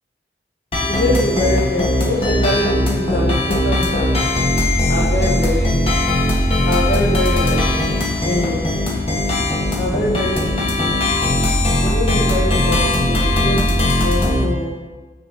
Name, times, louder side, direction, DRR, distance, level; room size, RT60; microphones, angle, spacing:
sound 1, 0.7-14.4, left 1 dB, 35° left, 1.3 m, -18 dB
voice 1, 0.9-4.1 4.9-5.8 6.7-7.6 8.2-8.6 9.8-10.5 10.8-10.9 11.8-14.7, left 1 dB, 60° left, -7 dB, 1.4 m, -23 dB
6.0 x 5.2 x 6.9 m, 1.3 s
head